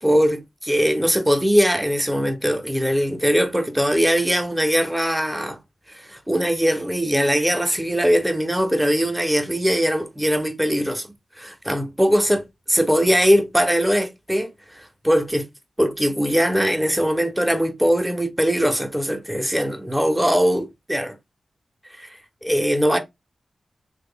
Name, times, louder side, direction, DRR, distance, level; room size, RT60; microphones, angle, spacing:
voice 1, 0.0-5.6 5.9-11.1 11.4-12.4 12.7-15.5 15.8-21.2 22.0-22.1 22.4-23.0, equal, 5° right, 0.5 m, -21 dB
3.1 x 2.0 x 3.6 m
wide cardioid pair, 130°, 0 cm